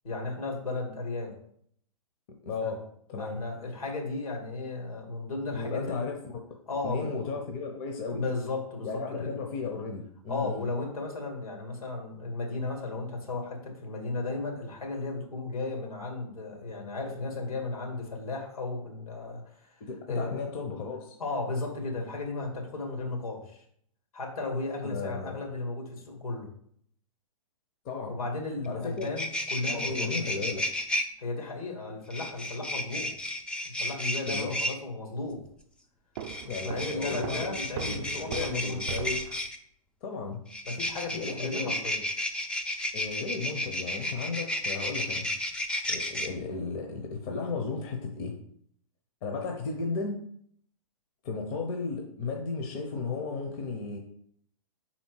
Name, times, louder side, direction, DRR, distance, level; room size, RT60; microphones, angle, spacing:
voice 1, 0.0-1.3 2.6-2.7 3.2-6.0 6.7-7.2 8.1-9.3 10.3-19.7 20.1-20.5 21.2-23.6 24.1-26.5 28.1-30.1 31.2-33.1 33.6-35.4 36.6-39.0 40.6-42.0, left 3 dB, 80° left, 1 dB, 2.2 m, -35 dB
voice 2, 2.4-2.8 3.1-3.4 5.5-6.4 6.8-8.2 8.8-10.6 19.8-21.2 24.8-25.4 27.8-28.2 28.7-29.1 29.6-30.6 34.3-34.6 36.4-37.5 37.8-39.2 40.0-40.4 41.1-41.7 42.9-45.3 45.9-48.4 49.2-50.2 51.2-54.0, left 4 dB, 40° left, 2 dB, 0.9 m, -34 dB
sound 1, 28.6-28.7 29.0-31.0 32.1-34.7 36.2-39.6 40.5-46.3, left 1 dB, 5° left, 0.4 m, -32 dB
Walk footsteps, 36.2-39.5, right 6 dB, 40° right, 0.5 m, -39 dB
5.3 x 4.3 x 4.8 m, 0.66 s
hypercardioid pair, 115°, 18 cm